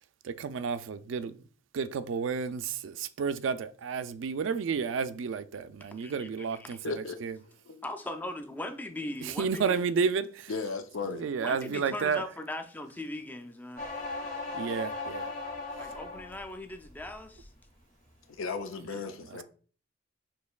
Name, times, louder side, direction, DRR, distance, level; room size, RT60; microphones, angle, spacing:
voice 1, 0.2-1.4 1.7-7.4 9.2-10.5 11.0-12.2 14.5-15.3 18.8-19.0, right 5 dB, 70° right, 0.3 m, -31 dB
voice 2, 5.9-6.8 7.8-9.6 11.4-13.8 15.8-17.5, left 1 dB, 10° left, 0.4 m, -39 dB
voice 3, 6.8-7.2 7.7-7.8 10.5-11.3 18.4-19.4, left 4 dB, 85° left, 0.5 m, -35 dB
sound 1, 13.8-16.5 16.9-17.4, left 3 dB, 40° left, 1.6 m, -37 dB
6.2 x 3.1 x 2.3 m
head